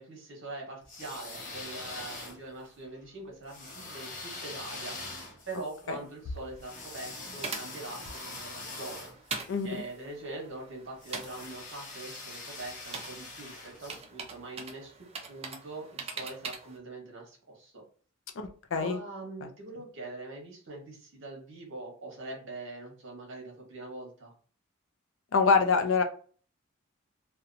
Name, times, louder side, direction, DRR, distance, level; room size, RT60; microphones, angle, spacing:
voice 1, 0.0-5.0 5.5-9.1 9.6-17.8 18.7-24.3, right 2 dB, 60° right, 0 dB, 1.1 m, -43 dB
sound 1, 0.8-2.7 3.5-9.8 11.0-14.0, left 2 dB, 40° left, 0.8 m, -43 dB
sound 2, 6.3-16.8, right 4 dB, 30° right, 0.4 m, -44 dB
voice 2, 25.3-26.0, left 5 dB, 65° left, 6 dB, 0.4 m, -24 dB
2.8 x 2.2 x 2.5 m, 0.43 s
head